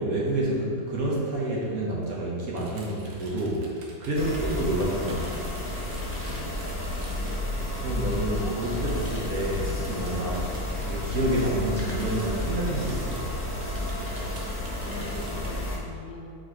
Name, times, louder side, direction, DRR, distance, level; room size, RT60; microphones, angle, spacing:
voice 1, 0.0-5.5 7.8-10.5 10.8-13.2, right 1 dB, 55° right, -4 dB, 1.3 m, -29 dB
sound 1, 2.5-15.5, right 2 dB, 85° right, 1.6 m, -48 dB
sound 2, 4.1-15.8, left 1 dB, 20° left, 0.3 m, -31 dB
voice 2, 6.3-6.6 7.8-9.1 10.1-10.4 14.7-16.4, left 3 dB, 70° left, -1 dB, 1.4 m, -44 dB
sound 3, 9.7-15.6, equal, 20° right, 0.8 m, -45 dB
5.2 x 4.3 x 4.5 m, 2.2 s
omnidirectional pair, 2.0 m